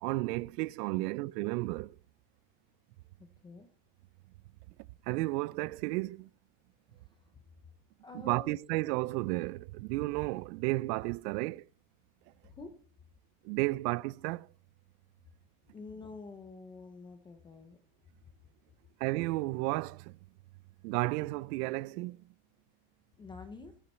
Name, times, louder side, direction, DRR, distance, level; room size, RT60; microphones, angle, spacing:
voice 1, 0.0-2.0 5.1-6.3 8.2-11.7 13.4-14.5 19.0-20.1 20.8-22.2, right 21 dB, 80° right, 0.5 m, -33 dB
voice 2, 3.2-3.7 6.9-7.4 8.0-8.5 12.4-12.8 15.7-17.8 18.4-18.5 23.1-23.8, left 4 dB, 10° left, 0.5 m, -48 dB
18.5 x 6.9 x 4.3 m
cardioid pair, 175°, 47 cm